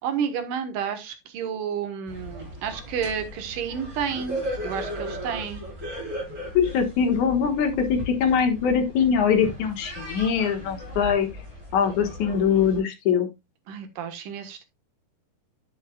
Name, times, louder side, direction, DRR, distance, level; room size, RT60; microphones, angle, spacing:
voice 1, 0.0-4.4 4.6-5.6 13.7-14.6, right 7 dB, 80° right, 8 dB, 2.9 m, -30 dB
sound 1, 2.1-12.8, equal, 25° right, 4.5 m, -37 dB
voice 2, 6.5-11.3 11.7-13.3, left 7 dB, 70° left, 5 dB, 2.7 m, -22 dB
10.5 x 8.1 x 2.3 m, 0.21 s
omnidirectional pair, 3.7 m